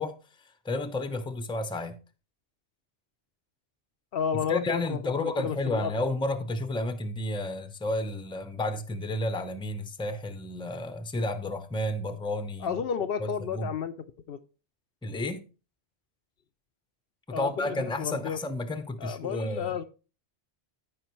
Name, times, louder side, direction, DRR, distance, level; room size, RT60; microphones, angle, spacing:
voice 1, 0.0-2.0 4.5-12.8 13.2-13.7 15.0-15.4 17.3-19.8, left 2 dB, 5° left, 0.6 m, -31 dB
voice 2, 4.1-5.9 12.6-13.9 14.3-14.4 17.3-18.4 19.0-19.8, left 7 dB, 65° left, 0.7 m, -32 dB
14.5 x 5.1 x 3.1 m
omnidirectional pair, 1.1 m